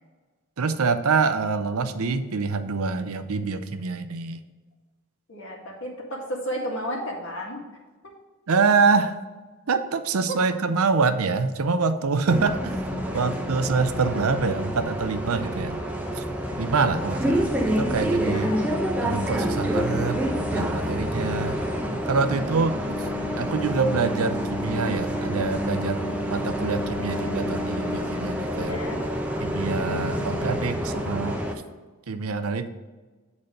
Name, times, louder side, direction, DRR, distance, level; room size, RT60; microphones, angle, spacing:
voice 1, 0.6-4.4 8.5-9.2 9.7-12.8 13.1-15.8 16.2-16.3 16.6-18.5 19.0-21.6 22.1-22.7 23.4-26.0 26.3-28.8 29.4-31.4 32.1-32.7, right 4 dB, 75° right, 10 dB, 0.6 m, -25 dB
voice 2, 5.3-7.6 10.3-10.4 13.1-13.2 18.3-18.7 22.3-22.9 28.5-29.0, equal, 55° left, -1 dB, 1.9 m, -33 dB
Bus, 12.3-31.5, equal, 5° right, 0.7 m, -28 dB
8.8 x 4.1 x 5.1 m, 1.3 s
head